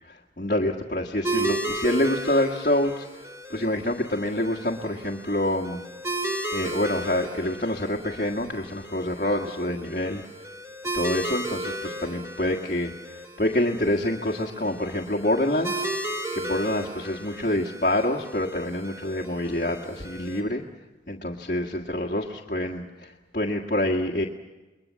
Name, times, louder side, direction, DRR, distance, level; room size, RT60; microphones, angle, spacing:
voice 1, 0.0-5.8 6.5-10.2 10.9-15.8 16.3-20.6 21.1-24.3, left 1 dB, 45° left, 1 dB, 1.6 m, -27 dB
sound 1, 1.2-20.4, right 1 dB, 15° right, 3.7 m, -34 dB
29.5 x 21.5 x 7.5 m, 1.2 s
head